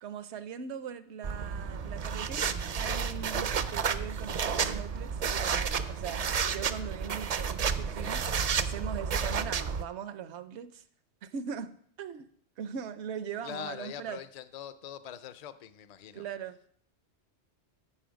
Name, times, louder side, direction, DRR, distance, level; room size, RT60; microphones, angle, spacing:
voice 1, 0.0-6.2 6.5-8.3 8.6-10.8 11.2-12.3 12.6-14.2 16.1-16.6, right 7 dB, 75° right, 13 dB, 0.9 m, -40 dB
sound 1, 1.2-9.8, right 6 dB, 50° right, 0.4 m, -31 dB
voice 2, 13.4-16.3, left 9 dB, 50° left, 13 dB, 0.5 m, -43 dB
12.5 x 5.5 x 5.1 m, 0.63 s
omnidirectional pair, 1.1 m